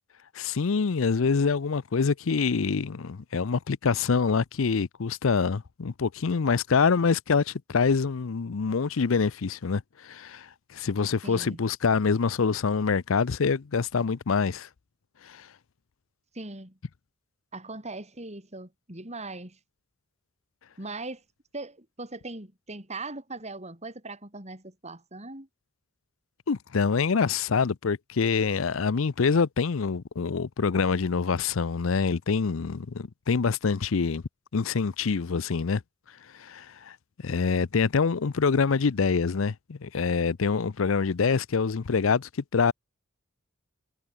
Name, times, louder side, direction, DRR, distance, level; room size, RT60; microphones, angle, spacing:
voice 1, 0.3-14.7 15.2-15.5 26.5-34.2 34.5-35.8 36.3-37.0 37.2-42.7, left 5 dB, 70° left, 0.6 m, -25 dB
voice 2, 11.2-11.6 16.3-16.8 17.5-19.6 20.8-21.2 21.5-25.5, right 2 dB, 30° right, 6.9 m, -40 dB
head